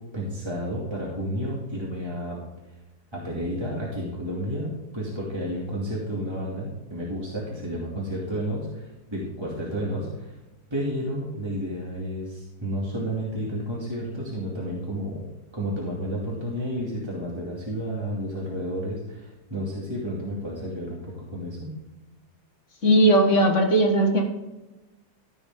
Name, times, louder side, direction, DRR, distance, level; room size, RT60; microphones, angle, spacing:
voice 1, 0.1-2.4 3.1-10.4 10.7-15.2 15.5-21.7, equal, 15° right, -5 dB, 2.4 m, -31 dB
voice 2, 22.8-24.2, right 1 dB, 40° left, 2 dB, 1.9 m, -18 dB
14.5 x 7.0 x 3.7 m, 1.1 s
omnidirectional pair, 2.0 m